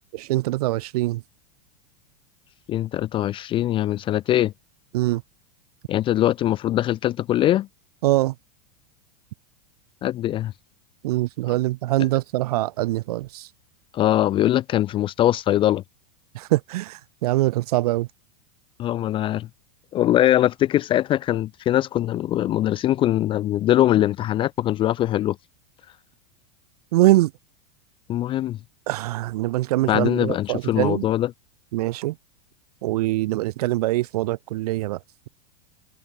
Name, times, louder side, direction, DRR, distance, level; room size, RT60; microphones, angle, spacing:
voice 1, 0.3-1.2 4.9-5.2 8.0-8.3 11.0-13.5 16.3-18.1 26.9-27.3 28.9-31.1 31.7-32.2 32.8-35.0, right 17 dB, 65° right, 0.9 m, -23 dB
voice 2, 2.7-4.5 5.9-7.7 10.0-10.5 13.9-15.8 18.8-19.5 19.9-25.4 28.1-28.6 29.9-31.3, left 13 dB, 25° left, 0.3 m, -22 dB
hypercardioid pair, 105°, 21 cm